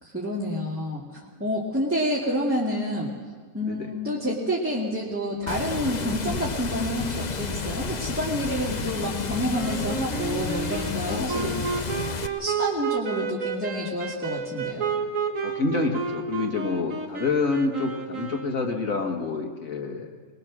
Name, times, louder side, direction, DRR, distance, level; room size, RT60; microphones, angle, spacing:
voice 1, 0.0-3.1 3.5-11.5 12.4-14.9, equal, 10° right, -6 dB, 2.3 m, -28 dB
Water, 5.5-12.3, left 5 dB, 35° left, 0.8 m, -31 dB
Wind instrument woodwind instrument, 9.5-19.0, right 4 dB, 65° right, 1.9 m, -31 dB
voice 2, 11.1-11.6 15.4-20.1, left 3 dB, 65° left, 2 dB, 2.2 m, -28 dB
22.0 x 21.0 x 6.2 m, 1.5 s
omnidirectional pair, 1.5 m